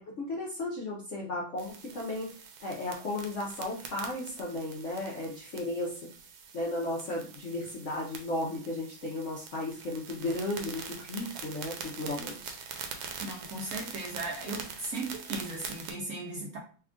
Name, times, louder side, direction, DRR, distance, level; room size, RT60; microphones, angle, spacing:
voice 1, 0.0-2.3 2.6-6.1 6.5-12.6, left 1 dB, 65° left, 0.7 m, -35 dB
sound 1, 1.6-15.9, right 6 dB, 80° right, 1.4 m, -44 dB
voice 2, 13.2-16.6, right 2 dB, 65° right, 0.9 m, -37 dB
3.4 x 2.3 x 3.6 m
omnidirectional pair, 2.2 m